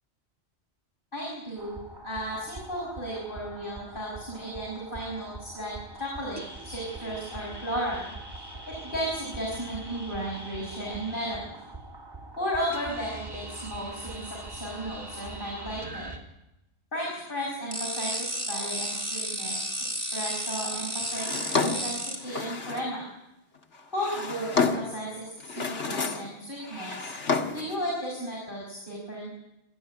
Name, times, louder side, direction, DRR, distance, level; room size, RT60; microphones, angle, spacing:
voice 1, 1.1-1.7 2.0-8.1 8.7-11.4 12.4-16.1 16.9-23.1 23.9-27.1 27.5-29.3, equal, 50° left, -3 dB, 6.5 m, -34 dB
sound 1, 1.6-16.2, right 2 dB, 20° right, 2.8 m, -43 dB
sound 2, 17.7-22.2, equal, 45° right, 4.1 m, -32 dB
Drawer open or close, 21.1-22.9 23.7-25.0 25.4-26.3 26.6-27.8, left 4 dB, 85° left, 2.0 m, -30 dB
27.0 x 13.5 x 9.8 m, 0.92 s
omnidirectional pair, 1.2 m